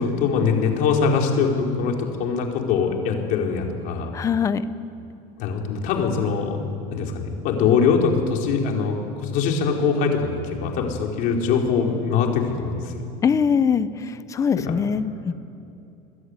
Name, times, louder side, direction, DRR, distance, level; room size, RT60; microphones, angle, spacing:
voice 1, 0.0-4.1 5.4-6.7 6.9-13.0 14.7-14.8, left 5 dB, 45° left, 1 dB, 4.1 m, -22 dB
voice 2, 4.1-4.6 13.2-15.3, left 6 dB, 15° left, 13 dB, 0.7 m, -22 dB
28.5 x 21.5 x 9.7 m, 2.7 s
cardioid pair, 180°, 20 cm